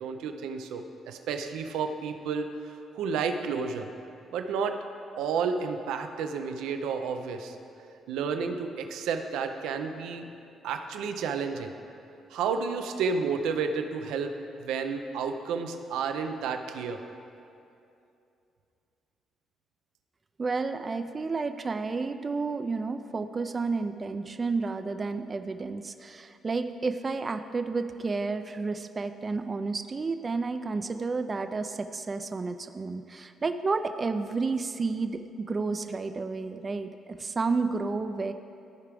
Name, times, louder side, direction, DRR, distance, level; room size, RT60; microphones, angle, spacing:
voice 1, 0.0-3.9 4.3-4.8 5.2-7.6 8.1-10.3 10.6-11.7 12.3-14.3 14.6-17.0, right 5 dB, 90° right, 6 dB, 0.5 m, -31 dB
voice 2, 20.4-38.3, right 4 dB, 30° right, 9 dB, 0.3 m, -31 dB
14.0 x 4.8 x 3.4 m, 2.7 s
cardioid pair, 90°, 0 cm